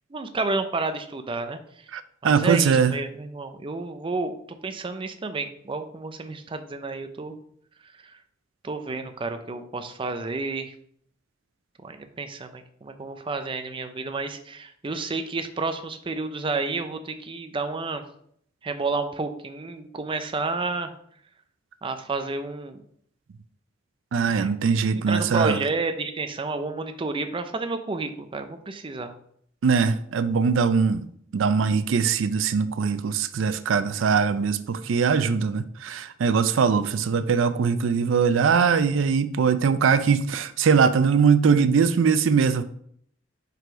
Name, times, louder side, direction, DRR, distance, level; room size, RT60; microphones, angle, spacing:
voice 1, 0.1-1.6 2.2-7.4 8.6-10.7 11.8-18.0 18.6-20.9 21.8-22.8 24.3-24.5 24.9-29.1, right 3 dB, 25° right, 8 dB, 0.5 m, -30 dB
voice 2, 1.9-2.9 24.1-25.6 29.6-31.0 31.3-42.6, right 6 dB, 80° right, 12 dB, 0.4 m, -21 dB
5.4 x 3.8 x 5.0 m, 0.66 s
head